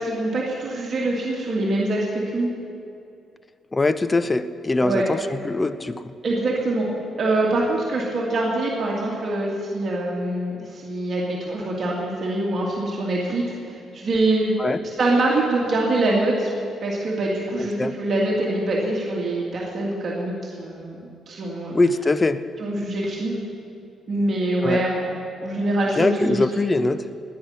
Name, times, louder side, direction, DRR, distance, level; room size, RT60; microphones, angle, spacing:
voice 1, 0.0-2.5 4.8-5.0 6.2-6.9 7.2-14.6 15.0-16.5 16.8-21.0 21.3-21.7 22.6-23.4 24.1-25.1 25.4-26.5, right 2 dB, 50° right, -4 dB, 2.6 m, -24 dB
voice 2, 3.7-6.0 14.6-14.8 17.5-17.9 21.7-22.4 24.6-24.8 25.9-27.0, left 2 dB, 20° left, 13 dB, 0.7 m, -22 dB
18.5 x 10.0 x 5.9 m, 2.5 s
cardioid pair, 90°, 0 cm